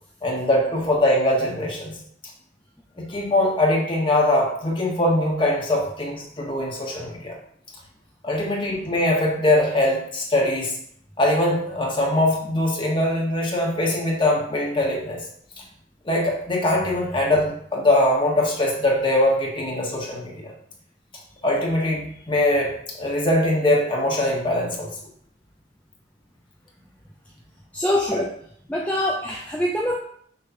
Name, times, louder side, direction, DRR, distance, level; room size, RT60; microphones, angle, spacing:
voice 1, 0.2-2.0 3.0-7.3 8.2-10.8 11.2-15.2 16.0-20.5 21.4-24.9 28.1-28.2, left 1 dB, 25° left, -2 dB, 1.6 m, -22 dB
voice 2, 27.7-28.3 28.7-30.0, left 1 dB, 10° left, -1 dB, 0.5 m, -24 dB
6.6 x 3.3 x 5.6 m, 0.66 s
head